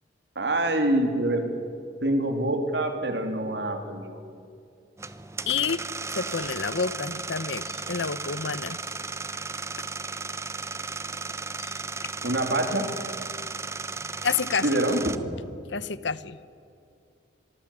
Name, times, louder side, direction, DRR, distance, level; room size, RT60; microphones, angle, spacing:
voice 1, 0.3-1.4 2.0-4.1 12.2-12.8 14.6-15.2, right 1 dB, 70° right, 5 dB, 3.4 m, -25 dB
sound 1, 5.0-15.2, right 4 dB, 15° right, 0.8 m, -35 dB
voice 2, 5.5-5.8 6.2-8.8 11.6-11.7 14.2-14.8 15.7-16.4, left 5 dB, 80° left, 16 dB, 0.9 m, -29 dB
25.5 x 23.5 x 7.4 m, 2.4 s
head